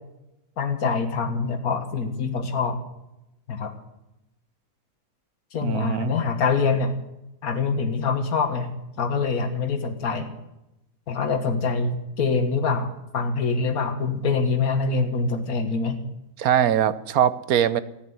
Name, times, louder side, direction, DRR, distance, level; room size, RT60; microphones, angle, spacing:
voice 1, 0.6-2.8 3.5-3.7 5.5-6.9 7.4-10.3 11.1-16.0, left 4 dB, 85° left, 6 dB, 2.0 m, -25 dB
voice 2, 5.6-6.1 16.4-17.8, right 10 dB, 90° right, 16 dB, 1.3 m, -22 dB
15.0 x 9.9 x 9.6 m, 0.90 s
omnidirectional pair, 1.5 m